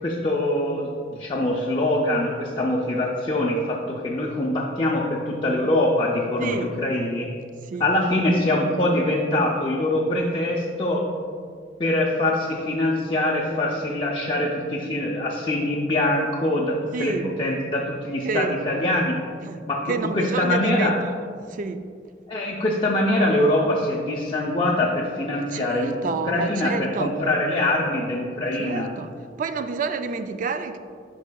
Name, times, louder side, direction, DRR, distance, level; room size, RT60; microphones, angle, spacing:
voice 1, 0.0-7.3 7.8-11.1 11.8-19.2 19.7-21.0 22.3-26.0 26.3-28.9, left 1 dB, 30° left, 0.5 m, -23 dB
voice 2, 6.4-6.7 7.7-7.9 16.9-17.3 18.2-18.5 19.5-21.0 21.5-21.9 25.3-27.1 28.6-29.1 29.4-30.8, right 4 dB, 45° right, 0.3 m, -29 dB
8.2 x 5.4 x 2.3 m
head